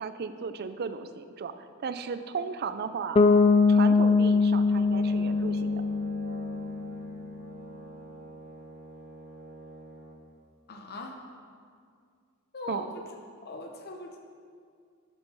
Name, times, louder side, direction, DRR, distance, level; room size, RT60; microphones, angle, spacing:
voice 1, 0.0-3.2 3.7-5.8 12.7-12.9, right 5 dB, 50° right, 11 dB, 0.4 m, -35 dB
Bass guitar, 3.2-7.0, left 4 dB, 25° left, 0.3 m, -22 dB
Brass instrument, 4.7-10.2, right 2 dB, 65° right, 2.1 m, -46 dB
voice 2, 10.7-11.2 12.5-13.0 13.4-14.2, left 2 dB, 50° left, 2 dB, 0.7 m, -40 dB
6.9 x 6.6 x 5.5 m, 2.2 s
head